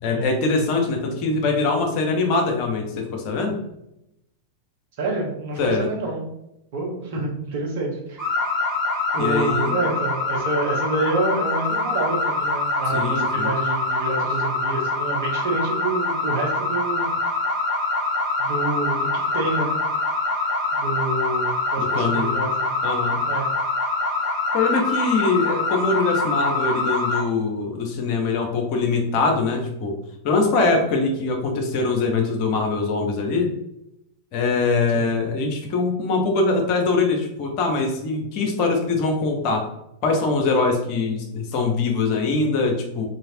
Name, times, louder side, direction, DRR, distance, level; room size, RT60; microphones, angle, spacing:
voice 1, 0.0-3.5 5.6-5.9 9.1-9.7 12.9-13.5 21.8-22.4 22.8-23.2 24.5-30.0 30.2-33.5 34.3-39.7 40.0-43.0, left 3 dB, 45° left, 2 dB, 0.6 m, -22 dB
voice 2, 5.0-6.2 6.7-8.2 9.1-17.1 18.4-19.8 20.3-22.7 23.3-23.5 34.9-35.0, right 3 dB, 50° right, -1 dB, 0.9 m, -28 dB
sound 1, 8.2-27.2, left 2 dB, 20° right, 1.0 m, -24 dB
3.2 x 2.7 x 2.6 m, 0.83 s
figure-of-eight pair, 90°, 0 cm